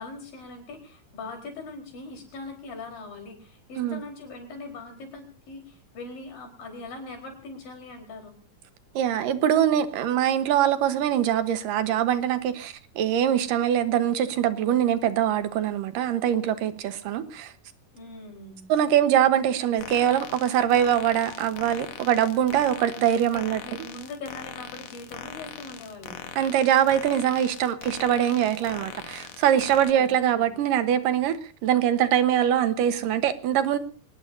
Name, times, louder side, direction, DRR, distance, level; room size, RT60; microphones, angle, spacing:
voice 1, 0.0-8.4 17.9-18.7 23.3-26.2 29.9-30.1 30.3-30.5, left 3 dB, 90° left, 6.0 m, -41 dB
voice 2, 9.0-17.5 18.7-23.6 26.4-31.3 31.6-33.8, right 10 dB, 85° right, 2.8 m, -23 dB
sound 1, 19.8-29.9, left 9 dB, 60° left, 2.1 m, -41 dB
24.0 x 19.5 x 2.7 m
omnidirectional pair, 3.8 m